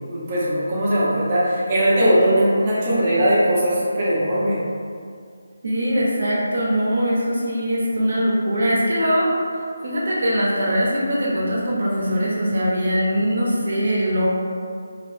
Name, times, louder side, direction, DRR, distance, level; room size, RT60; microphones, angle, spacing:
voice 1, 0.1-4.6, equal, 20° right, -8 dB, 0.6 m, -19 dB
voice 2, 5.6-9.3 9.8-14.3, equal, 55° right, -5 dB, 0.7 m, -21 dB
2.8 x 2.0 x 3.1 m, 2.2 s
figure-of-eight pair, 175°, 0 cm